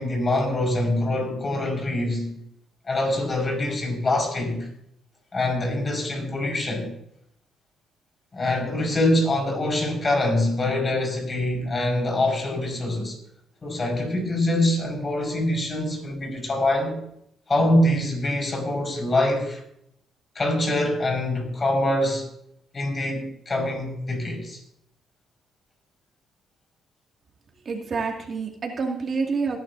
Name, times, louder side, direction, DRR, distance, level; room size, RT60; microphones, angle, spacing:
voice 1, 0.0-2.4 2.9-4.7 5.3-6.9 8.3-13.2 13.6-17.0 17.5-19.6 20.3-22.3 22.7-24.6, left 1 dB, 35° left, 5.1 m, -24 dB
voice 2, 27.7-29.6, right 4 dB, 45° right, 2.2 m, -27 dB
18.5 x 11.0 x 2.7 m
cardioid pair, 90°, 0 cm